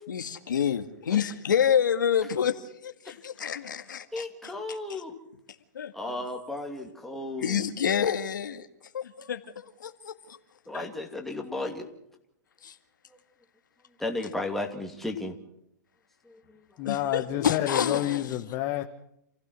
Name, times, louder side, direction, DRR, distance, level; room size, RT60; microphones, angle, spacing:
voice 1, 0.1-4.8 5.8-6.2 7.4-8.7 8.9-9.4 9.8-10.4 10.7-10.9 12.6-12.7 16.9-18.2, left 8 dB, 90° left, 1.9 m, -28 dB
voice 2, 4.1-5.2 5.9-7.7 10.7-11.9 14.0-15.4 16.3-16.6, left 2 dB, ahead, 2.6 m, -34 dB
voice 3, 16.8-18.8, left 14 dB, 35° left, 1.2 m, -29 dB
28.0 x 16.0 x 6.4 m
hypercardioid pair, 140°, 10 cm